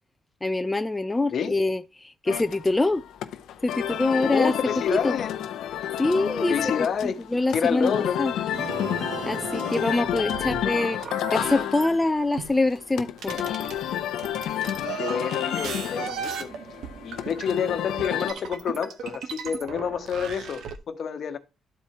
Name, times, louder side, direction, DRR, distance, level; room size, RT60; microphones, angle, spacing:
voice 1, 0.4-3.0 3.6-4.5 5.0-5.1 6.0-7.9 8.2-8.3 9.3-11.0 11.3-13.5, left 2 dB, 15° left, 0.4 m, -25 dB
sound 1, 2.3-18.3, left 11 dB, 80° left, 0.6 m, -31 dB
voice 2, 4.3-5.4 6.5-8.2 15.0-16.5 17.0-21.4, left 7 dB, 60° left, 1.0 m, -28 dB
sound 2, 8.5-11.9 12.4-20.8, right 7 dB, 75° right, 0.9 m, -37 dB
12.0 x 4.5 x 2.8 m
cardioid pair, 90°, 0 cm